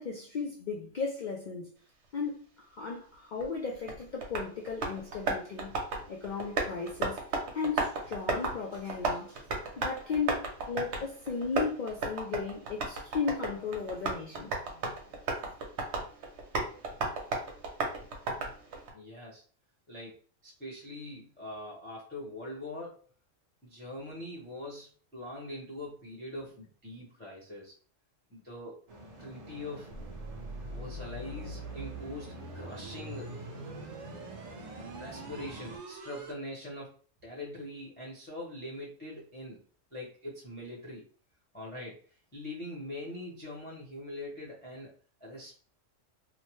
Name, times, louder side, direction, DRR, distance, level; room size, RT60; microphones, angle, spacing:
voice 1, 0.0-1.7 2.1-5.7 6.1-7.2 7.5-9.4 9.8-14.5, left 5 dB, 75° left, 0.4 m, -35 dB
Tap, 3.4-18.9, right 3 dB, 65° right, 1.0 m, -35 dB
voice 2, 18.9-19.4 19.9-20.1 20.4-23.1 23.6-27.7 28.3-28.8 29.2-30.0 30.7-33.4 35.0-37.0 37.2-39.6 39.9-41.1 41.5-42.0 42.3-44.9 45.2-45.5, left 1 dB, 10° left, 0.7 m, -42 dB
sound 1, 28.9-35.8, right 2 dB, 40° right, 0.6 m, -48 dB
sound 2, 29.9-36.3, right 2 dB, 85° right, 1.1 m, -44 dB
2.8 x 2.1 x 3.0 m
omnidirectional pair, 1.3 m